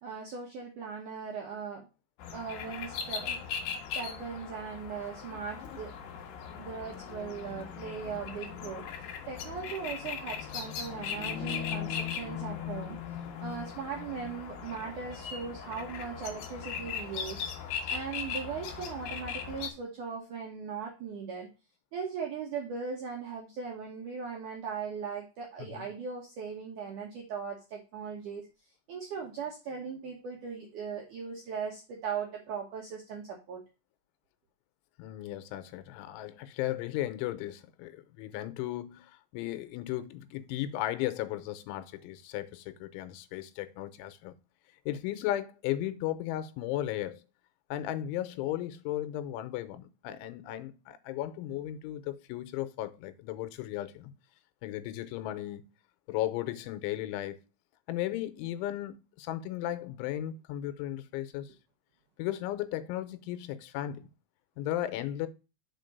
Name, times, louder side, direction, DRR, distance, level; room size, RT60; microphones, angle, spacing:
voice 1, 0.0-1.8 2.3-3.4 3.9-5.9 6.5-8.8 9.3-13.0 13.4-17.4 17.9-21.5 21.9-28.4 28.9-33.6, right 6 dB, 80° right, 1.7 m, -39 dB
sound 1, 2.2-19.7, left 7 dB, 70° left, 2.2 m, -38 dB
voice 2, 35.0-44.3 44.9-47.2 47.7-54.1 54.6-55.6 56.1-57.4 57.9-61.5 62.2-64.1 64.6-65.3, left 13 dB, 85° left, 3.1 m, -35 dB
6.2 x 4.5 x 5.2 m
omnidirectional pair, 5.4 m